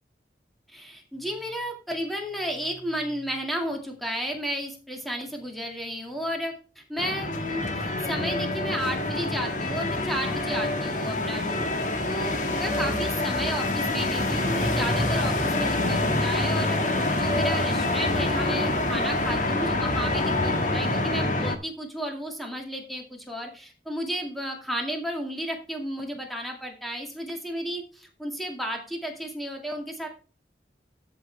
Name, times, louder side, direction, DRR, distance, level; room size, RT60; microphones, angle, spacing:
voice 1, 0.7-16.8 17.1-30.1, equal, ahead, 1 dB, 2.2 m, -33 dB
sound 1, 7.0-21.6, left 2 dB, 45° left, 1.7 m, -26 dB
13.0 x 6.6 x 3.4 m, 0.35 s
head